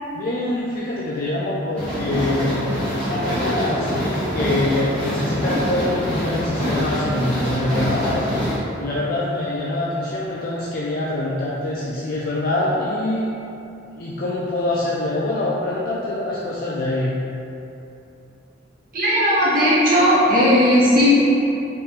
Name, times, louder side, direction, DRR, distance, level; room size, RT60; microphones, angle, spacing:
voice 1, 0.1-2.7 3.0-8.3 8.8-13.3 14.0-17.1, left 2 dB, 50° left, -6 dB, 0.4 m, -24 dB
sound 1, 1.8-8.6, equal, 5° left, 1.1 m, -24 dB
voice 2, 18.9-21.1, equal, 45° right, -8 dB, 0.7 m, -16 dB
3.6 x 2.8 x 4.2 m, 2.8 s
head